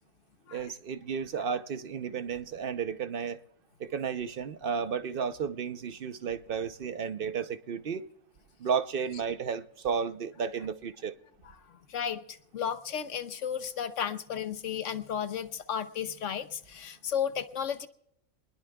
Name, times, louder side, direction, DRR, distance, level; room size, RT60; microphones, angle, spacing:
voice 1, 0.5-3.4 3.8-8.1 8.6-11.1, right 6 dB, 50° right, 0.8 m, -33 dB
voice 2, 11.9-17.9, left 8 dB, 70° left, 1.1 m, -34 dB
27.0 x 21.0 x 2.3 m
omnidirectional pair, 1.4 m